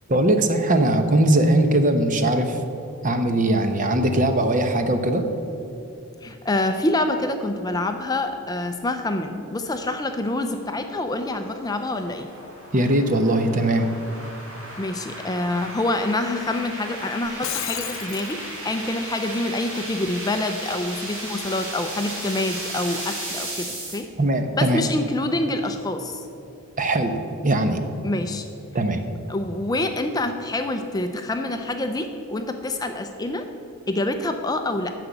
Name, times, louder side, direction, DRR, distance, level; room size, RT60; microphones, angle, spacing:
voice 1, 0.1-2.6 3.0-5.2 12.7-13.9 24.2-24.8 26.8-27.2 27.4-27.8 28.7-29.0, right 1 dB, 35° right, 7 dB, 0.8 m, -20 dB
voice 2, 6.2-12.3 14.8-24.1 24.5-26.3 28.0-28.5 29.3-33.5 33.9-34.9, left 2 dB, 15° left, 7 dB, 0.4 m, -26 dB
sound 1, 10.0-24.0, right 1 dB, 60° right, 3.1 m, -36 dB
Shatter, 17.2-18.3, left 11 dB, 60° left, 0.7 m, -31 dB
9.9 x 6.7 x 8.2 m, 2.8 s
head